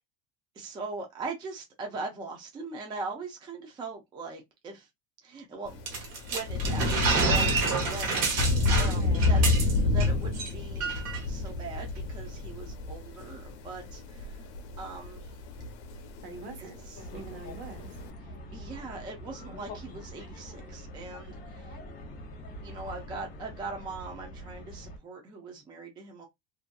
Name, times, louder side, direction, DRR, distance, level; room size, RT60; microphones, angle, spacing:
voice 1, 0.6-4.9 5.2-8.3 8.8-9.5 9.8-10.9 11.3-14.5 14.8-15.3 16.6-17.1 18.5-21.8 22.6-26.3, right 3 dB, 15° right, 0.4 m, -40 dB
Thunder / Rain, 5.7-18.1, left 3 dB, 80° left, 0.6 m, -29 dB
sound 1, 5.9-10.1 10.3-10.5 10.8-11.2, right 5 dB, 50° right, 0.9 m, -28 dB
voice 2, 8.9-9.5 16.2-16.8 17.1-18.0, right 4 dB, 75° right, 1.1 m, -43 dB
sound 2, 16.9-25.0, left 1 dB, 25° left, 0.8 m, -44 dB
2.5 x 2.5 x 2.2 m
cardioid pair, 165°, 33 cm